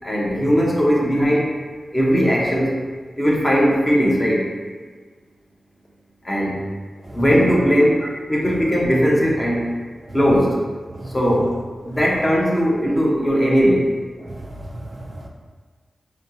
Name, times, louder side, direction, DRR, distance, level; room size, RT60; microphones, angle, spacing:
voice 1, 0.0-1.5 1.9-2.8 3.2-4.4 6.2-6.6 7.1-8.0 8.3-9.6 10.1-10.6 11.1-11.5 11.8-13.9, equal, 25° left, -4 dB, 1.0 m, -18 dB
voice 2, 14.2-15.3, right 1 dB, 40° right, 0 dB, 0.4 m, -36 dB
4.2 x 2.9 x 3.0 m, 1.5 s
cardioid pair, 65°, 0 cm